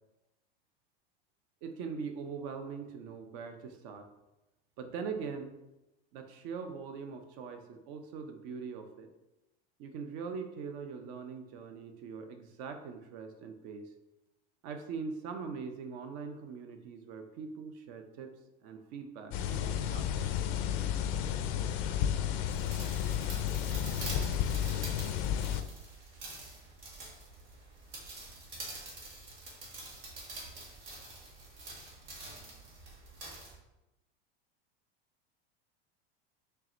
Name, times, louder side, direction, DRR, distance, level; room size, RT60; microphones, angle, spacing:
voice 1, 1.6-4.1 4.8-5.5 6.1-9.1 9.8-13.9 14.6-18.3 18.6-20.4, right 5 dB, 55° right, 6 dB, 0.6 m, -42 dB
sound 1, 19.3-25.6, left 9 dB, 55° left, 0.4 m, -32 dB
sound 2, 22.5-33.6, right 2 dB, 75° right, 1.5 m, -46 dB
4.6 x 3.3 x 2.5 m, 0.98 s
hypercardioid pair, 100°, 30 cm